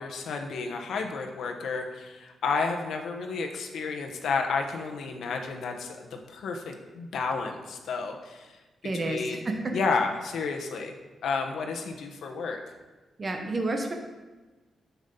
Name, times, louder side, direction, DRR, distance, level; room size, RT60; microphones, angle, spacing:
voice 1, 0.0-8.6 9.0-9.4 9.7-10.9 11.2-12.6, left 4 dB, 80° left, 3 dB, 1.1 m, -31 dB
voice 2, 8.8-9.8 13.2-13.9, right 2 dB, 30° right, 3 dB, 0.9 m, -30 dB
9.4 x 7.1 x 3.9 m, 1.2 s
wide cardioid pair, 150°, 0 cm